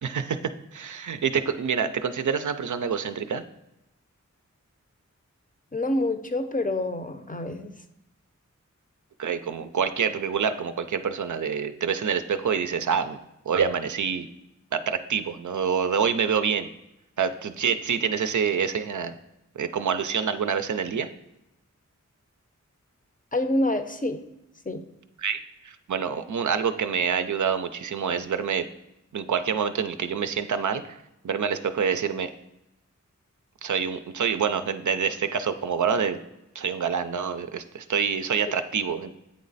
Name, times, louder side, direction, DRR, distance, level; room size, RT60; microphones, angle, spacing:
voice 1, 0.0-3.4 9.2-13.2 13.5-14.3 14.7-16.7 17.2-19.1 19.6-21.1 25.2-28.7 29.1-31.0 31.2-32.3 33.6-36.2 36.6-39.1, right 6 dB, 70° right, 10 dB, 0.4 m, -26 dB
voice 2, 5.7-7.8 23.3-24.2 24.7-24.8, left 1 dB, 25° left, 8 dB, 0.5 m, -27 dB
8.5 x 3.1 x 3.9 m, 0.90 s
wide cardioid pair, 50°, 31 cm